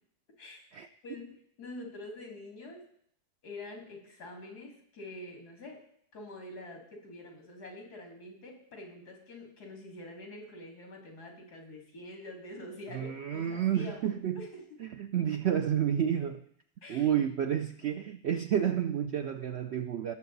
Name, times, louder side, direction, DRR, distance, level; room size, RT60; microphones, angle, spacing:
voice 1, 1.6-2.8 3.4-5.8 6.1-14.6 16.8-17.1, left 2 dB, 80° left, 1 dB, 3.1 m, -46 dB
voice 2, 12.9-14.5 14.8-16.4 16.9-20.1, right 9 dB, 70° right, 8 dB, 0.6 m, -30 dB
17.5 x 6.8 x 3.9 m, 0.68 s
omnidirectional pair, 1.7 m